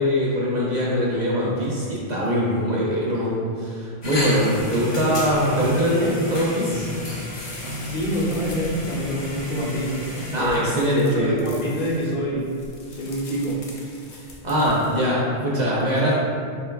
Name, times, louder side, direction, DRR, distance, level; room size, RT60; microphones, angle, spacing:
voice 1, 0.0-7.0 10.3-11.3 14.1-16.2, equal, 50° right, -6 dB, 0.7 m, -22 dB
sound 1, 4.0-10.4, left 1 dB, 35° left, 0.4 m, -32 dB
sound 2, 7.3-15.0, left 2 dB, 80° left, 1.0 m, -44 dB
voice 2, 7.8-10.0 10.3-12.5 12.9-13.6, equal, 55° left, -5 dB, 0.8 m, -26 dB
4.4 x 3.3 x 2.2 m, 2.3 s
omnidirectional pair, 1.1 m